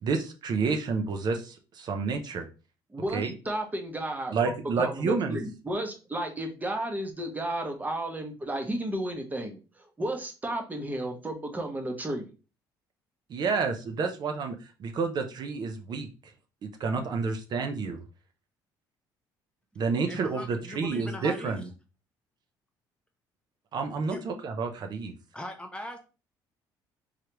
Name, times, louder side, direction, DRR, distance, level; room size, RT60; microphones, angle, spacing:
voice 1, 0.0-2.5 3.1-3.3 4.3-5.4 13.3-16.1 16.6-18.0 19.8-21.6 23.7-25.1, right 4 dB, 50° right, 5 dB, 0.5 m, -29 dB
voice 2, 2.9-4.3 4.8-12.3, right 1 dB, 20° right, 4 dB, 0.8 m, -33 dB
voice 3, 20.1-21.6 24.0-24.2 25.3-26.0, left 1 dB, 10° left, 5 dB, 0.5 m, -40 dB
3.2 x 2.4 x 2.9 m, 0.33 s
supercardioid pair, 85°, 9 cm